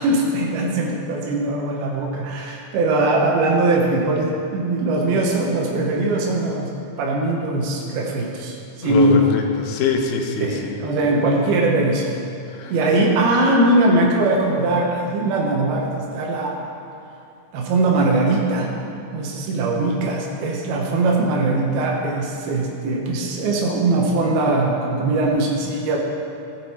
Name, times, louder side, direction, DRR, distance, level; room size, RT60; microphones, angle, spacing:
voice 1, 0.0-6.7 7.0-9.3 10.4-12.2 12.7-16.6 17.5-18.7 19.1-26.0, right 2 dB, 90° right, -1 dB, 3.0 m, -20 dB
voice 2, 8.8-10.8 12.5-12.7, left 5 dB, 85° left, 3 dB, 2.8 m, -24 dB
15.5 x 8.7 x 4.3 m, 2.7 s
omnidirectional pair, 4.3 m